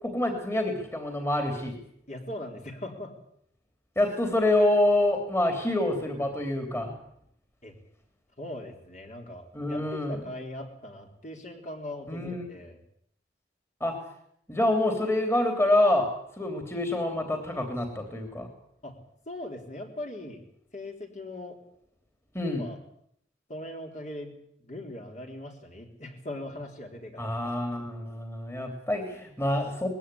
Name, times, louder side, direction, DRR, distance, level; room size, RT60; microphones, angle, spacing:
voice 1, 0.0-1.8 3.9-6.9 9.5-10.2 12.1-12.5 13.8-13.9 14.5-16.1 16.4-18.5 22.3-22.6 27.2-29.9, left 1 dB, 15° left, 4 dB, 3.2 m, -26 dB
voice 2, 2.1-3.1 7.6-7.7 8.4-12.8 18.8-19.0 19.3-20.4 20.7-21.6 22.4-22.8 23.5-27.3, left 1 dB, 40° left, 2 dB, 3.9 m, -40 dB
20.5 x 16.0 x 10.0 m, 0.71 s
head